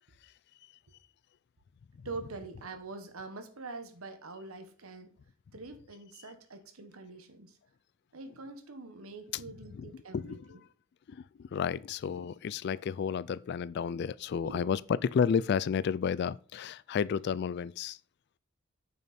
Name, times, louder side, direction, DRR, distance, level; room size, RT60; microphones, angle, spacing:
voice 1, 2.0-5.2 5.5-7.6 8.1-10.6 14.4-14.7, right 3 dB, 90° right, 1.3 m, -44 dB
voice 2, 9.7-10.4 11.1-18.0, left 7 dB, 50° left, 0.3 m, -31 dB
8.7 x 7.1 x 4.2 m
head